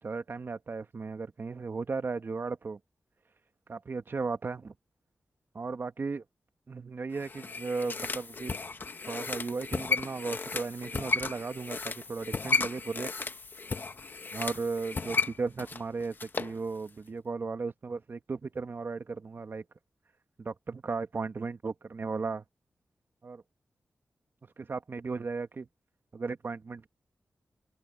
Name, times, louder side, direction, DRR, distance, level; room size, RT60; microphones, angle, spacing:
voice 1, 0.0-2.8 3.7-4.7 5.5-6.2 6.7-8.6 9.1-13.1 14.3-19.6 20.4-22.4 23.2-23.4 24.6-25.7 26.1-26.9, right 4 dB, 50° right, 1.6 m, -36 dB
sound 1, 7.2-16.6 16.9-17.0, left 4 dB, 45° left, 0.9 m, -34 dB
cardioid pair, 70°, 5 cm